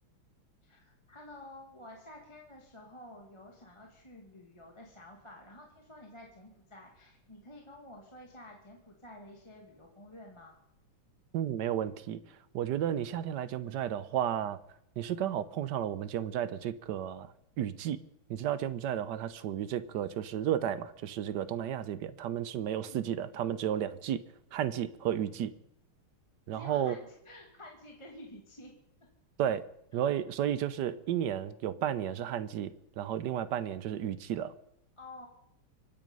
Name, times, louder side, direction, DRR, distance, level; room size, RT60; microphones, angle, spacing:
voice 1, 0.6-10.6 22.7-23.2 26.5-28.7 35.0-35.3, left 1 dB, 15° left, 2.1 m, -51 dB
voice 2, 11.3-14.6 15.0-18.0 18.3-24.2 24.5-25.5 26.5-27.0 29.4-34.5, right 10 dB, 65° right, 1.1 m, -33 dB
25.0 x 9.3 x 5.4 m
omnidirectional pair, 2.4 m